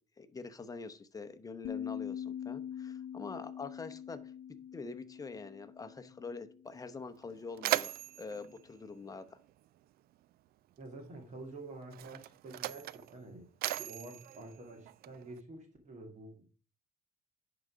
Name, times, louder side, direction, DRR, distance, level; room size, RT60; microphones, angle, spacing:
voice 1, 0.2-4.2 4.7-9.4, left 4 dB, 20° left, 9 dB, 0.9 m, -45 dB
sound 1, 1.6-6.8, left 9 dB, 75° left, 0.5 m, -43 dB
Mechanisms, 6.7-6.8 7.1-9.8 10.8-11.0 11.8-15.4, right 15 dB, 65° right, 0.4 m, -38 dB
voice 2, 10.8-13.5 13.8-16.4, right 2 dB, 45° right, 2 dB, 2.2 m, -48 dB
10.5 x 3.9 x 4.9 m, 0.40 s
cardioid pair, 110°, 17 cm